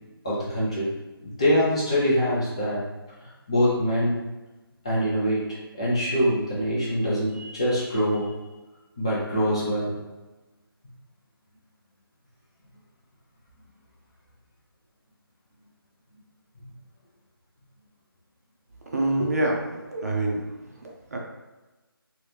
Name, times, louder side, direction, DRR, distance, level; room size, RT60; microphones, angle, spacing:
voice 1, 0.2-0.9 1.2-2.8 3.5-4.2 4.8-8.3 9.0-9.9, equal, 15° left, -8 dB, 0.4 m, -24 dB
voice 2, 18.9-20.4 20.8-21.2, right 1 dB, 40° right, 0 dB, 0.5 m, -26 dB
2.9 x 2.7 x 3.3 m, 1.1 s
figure-of-eight pair, 170°, 13 cm